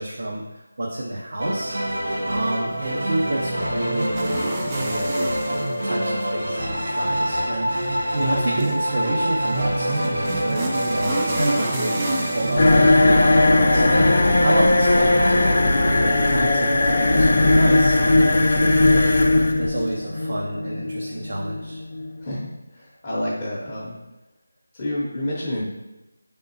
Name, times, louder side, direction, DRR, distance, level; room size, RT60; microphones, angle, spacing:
voice 1, 0.0-1.9 2.2-21.8, right 1 dB, 60° right, -2 dB, 0.6 m, -29 dB
sound 1, 1.4-16.4, equal, 80° right, 1.4 m, -27 dB
sound 2, 2.6-20.0, right 2 dB, 15° right, 0.4 m, -33 dB
sound 3, 12.6-22.2, left 2 dB, 45° left, 0.5 m, -18 dB
voice 2, 22.2-23.9 24.7-25.6, left 1 dB, 20° left, -9 dB, 0.8 m, -29 dB
5.2 x 3.5 x 2.7 m, 1.1 s
figure-of-eight pair, 170°, 0 cm